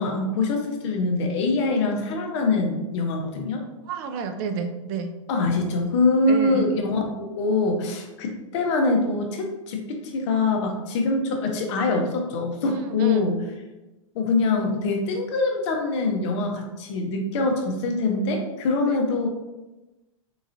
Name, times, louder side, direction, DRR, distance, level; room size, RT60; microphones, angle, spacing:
voice 1, 0.0-3.6 5.3-13.4 14.1-19.3, left 3 dB, 55° left, 2 dB, 0.8 m, -24 dB
voice 2, 3.9-5.1 6.3-6.6 12.7-13.3 18.9-19.0, right 6 dB, 40° right, 7 dB, 0.4 m, -30 dB
3.8 x 2.9 x 2.6 m, 1.0 s
supercardioid pair, 145°, 18 cm